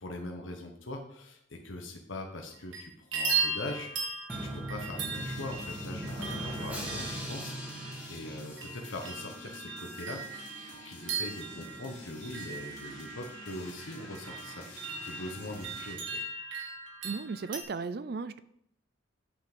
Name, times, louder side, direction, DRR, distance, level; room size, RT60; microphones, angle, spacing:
voice 1, 0.0-3.9 4.3-10.4 10.7-14.6 15.0-16.2, left 1 dB, 80° left, 2 dB, 1.3 m, -42 dB
sound 1, 2.4-2.8 3.1-17.6, right 4 dB, 75° right, 2.0 m, -38 dB
Drum, 4.3-9.1, equal, 10° right, 1.9 m, -39 dB
sound 2, 5.0-15.9, left 1 dB, 60° left, 3.0 m, -49 dB
voice 2, 17.0-18.4, right 4 dB, 50° right, 14 dB, 0.4 m, -36 dB
8.7 x 5.9 x 5.2 m, 0.74 s
head